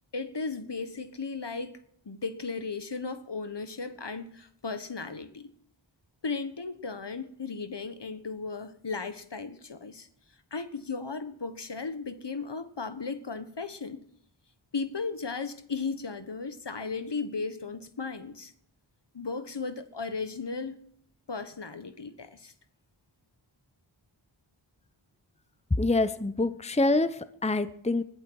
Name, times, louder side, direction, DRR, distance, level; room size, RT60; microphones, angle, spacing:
voice 1, 0.1-1.7 2.0-5.5 6.2-10.1 10.5-14.0 14.7-18.5 19.1-20.8 21.3-22.5, left 4 dB, 60° left, 1.4 m, -36 dB
voice 2, 25.8-28.0, left 2 dB, 15° left, 0.8 m, -26 dB
20.5 x 11.5 x 4.8 m
wide cardioid pair, 45°, 48 cm